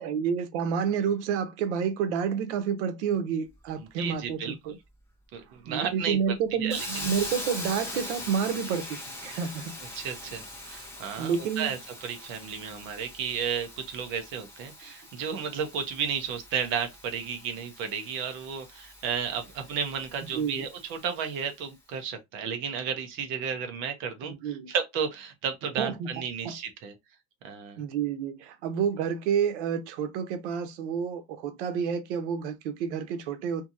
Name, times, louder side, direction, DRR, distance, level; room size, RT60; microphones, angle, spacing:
voice 1, 0.0-4.8 5.6-9.8 11.2-11.7 20.3-20.7 24.2-24.7 25.8-26.1 26.4-26.6 27.8-33.7, right 7 dB, 85° right, 0.8 m, -29 dB
voice 2, 4.0-4.8 5.3-6.2 6.6-7.1 9.9-11.8 12.0-24.3 24.7-26.9 27.4-27.8, right 7 dB, 35° right, 0.6 m, -33 dB
Hiss, 6.7-21.5, left 1 dB, 10° left, 0.8 m, -42 dB
2.8 x 2.7 x 2.4 m
cardioid pair, 175°, 34 cm